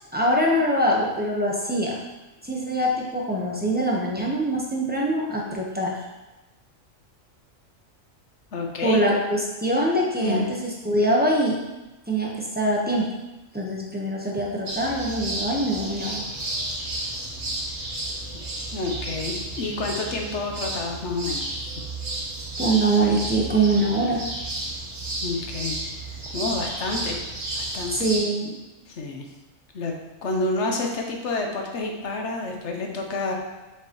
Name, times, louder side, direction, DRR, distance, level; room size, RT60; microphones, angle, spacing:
voice 1, 0.1-2.0 2.4-6.0 8.8-11.6 12.1-13.1 13.5-16.3 22.6-24.2 27.9-28.5, right 1 dB, 10° right, -3 dB, 0.8 m, -23 dB
voice 2, 8.5-9.0 10.2-10.5 18.7-21.7 25.2-25.8 26.3-27.2 27.5-28.0 28.9-29.3 29.7-29.9 30.2-33.3, left 3 dB, 65° left, 2 dB, 1.1 m, -29 dB
sound 1, 14.7-28.2, right 2 dB, 55° right, 1.5 m, -32 dB
6.9 x 4.9 x 3.0 m, 1.1 s
omnidirectional pair, 1.4 m